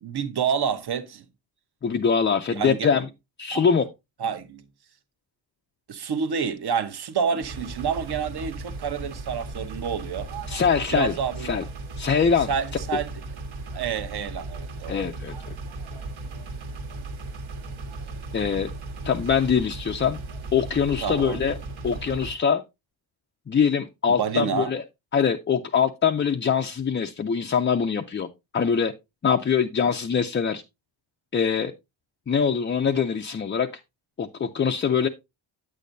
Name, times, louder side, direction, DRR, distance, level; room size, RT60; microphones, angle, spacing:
voice 1, 0.0-1.2 2.5-2.9 3.5-3.6 4.2-4.6 5.9-10.3 10.9-11.7 12.5-13.1 13.7-15.0 21.0-21.4 24.1-24.7, right 6 dB, 55° right, 1.0 m, -28 dB
voice 2, 1.8-3.1 3.4-3.8 10.5-11.2 11.4-11.6 12.0-12.5 14.9-15.3 18.3-18.7 19.0-20.2 20.5-21.6 21.8-22.6 23.5-24.8 25.1-28.3 28.5-28.9 29.2-30.6 31.3-31.7 32.3-33.7 34.2-35.1, left 6 dB, 25° left, 0.4 m, -23 dB
sound 1, 7.4-22.3, right 3 dB, 80° right, 1.6 m, -36 dB
9.0 x 8.4 x 2.6 m
wide cardioid pair, 165°, 48 cm